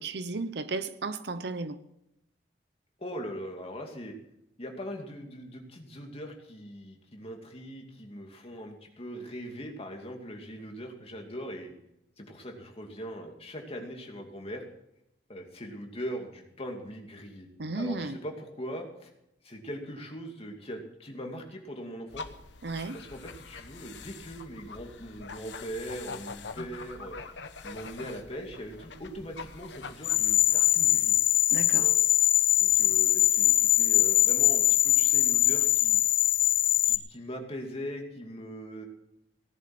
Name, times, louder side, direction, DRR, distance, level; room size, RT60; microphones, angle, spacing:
voice 1, 0.0-1.8 17.6-18.2 22.6-23.0 31.5-31.9, right 3 dB, 65° right, 0.9 m, -34 dB
voice 2, 3.0-4.1 4.6-11.7 12.2-14.6 15.3-17.5 17.7-19.1 19.4-22.3 22.9-27.2 27.6-31.2 31.8-32.0 32.6-36.0 36.8-38.9, equal, 35° left, 2.5 m, -40 dB
sound 1, 22.1-30.8, left 4 dB, 80° left, 1.1 m, -44 dB
sound 2, 30.0-37.0, left 13 dB, 50° left, 0.7 m, -22 dB
17.5 x 11.0 x 6.0 m
head